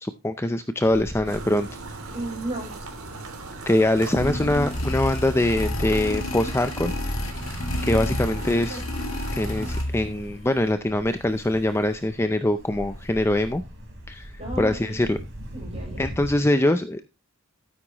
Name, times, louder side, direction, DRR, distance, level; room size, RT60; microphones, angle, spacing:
voice 1, 0.0-1.7 3.7-6.9 7.8-8.8 9.4-13.6 14.1-15.2 16.0-17.1, left 1 dB, 10° left, 10 dB, 0.4 m, -23 dB
Ocean, 0.8-16.3, equal, 55° right, 4.0 m, -42 dB
sound 1, 1.2-9.8, right 3 dB, 75° right, 2.9 m, -39 dB
voice 2, 2.1-2.7 4.4-4.9 14.4-15.0 15.5-16.1, right 1 dB, 30° right, -1 dB, 6.4 m, -34 dB
sound 2, 4.2-10.2, left 1 dB, 65° left, 2.1 m, -29 dB
12.5 x 9.5 x 3.0 m, 0.26 s
head